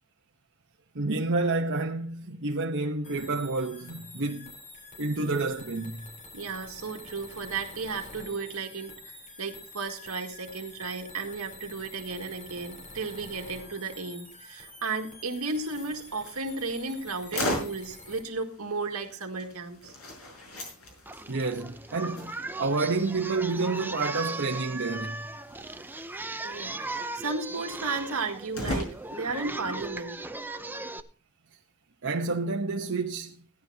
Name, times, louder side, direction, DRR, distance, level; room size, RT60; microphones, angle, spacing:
voice 1, 0.9-4.5 5.0-6.1 21.3-25.2 32.0-33.4, right 3 dB, 60° right, 1.0 m, -29 dB
sound 1, 3.0-18.2, left 2 dB, 35° left, 3.7 m, -47 dB
voice 2, 6.3-19.9 26.4-30.2, right 4 dB, 80° right, 2.0 m, -34 dB
sound 2, 15.5-29.5, left 1 dB, 85° left, 5.5 m, -40 dB
Singing, 21.1-31.0, right 2 dB, 10° right, 0.6 m, -38 dB
16.5 x 11.0 x 2.8 m
head